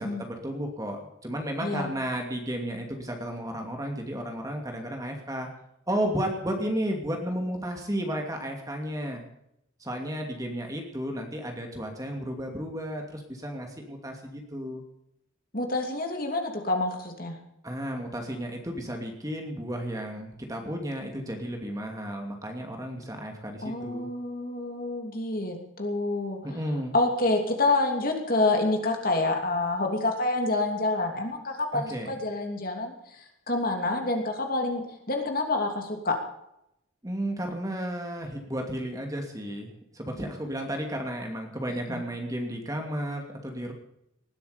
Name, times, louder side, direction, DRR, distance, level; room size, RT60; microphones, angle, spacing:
voice 1, 0.0-5.5 5.9-9.2 9.8-14.8 17.6-24.1 26.4-26.9 31.7-32.1 37.0-43.7, equal, 15° right, 2 dB, 2.6 m, -33 dB
voice 2, 1.6-1.9 15.5-17.4 23.6-26.4 26.9-32.9 33.5-36.2 41.9-42.0, left 2 dB, 45° left, 3 dB, 3.0 m, -27 dB
19.5 x 12.5 x 5.3 m, 0.79 s
head